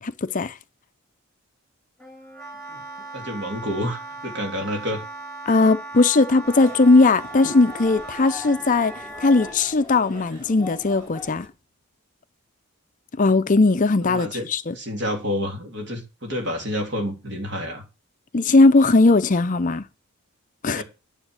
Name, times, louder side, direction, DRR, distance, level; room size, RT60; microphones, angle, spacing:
voice 1, 0.0-0.6 5.5-11.5 13.2-14.8 18.3-19.8 20.6-20.8, left 3 dB, 35° left, 0.5 m, -18 dB
Wind instrument woodwind instrument, 2.0-9.6, right 2 dB, ahead, 3.5 m, -38 dB
voice 2, 3.1-5.0 14.0-14.4 14.7-17.8 20.7-20.8, equal, 50° right, 3.1 m, -29 dB
sound 1, 6.4-11.5, left 1 dB, 20° right, 7.1 m, -41 dB
9.9 x 7.1 x 6.5 m
head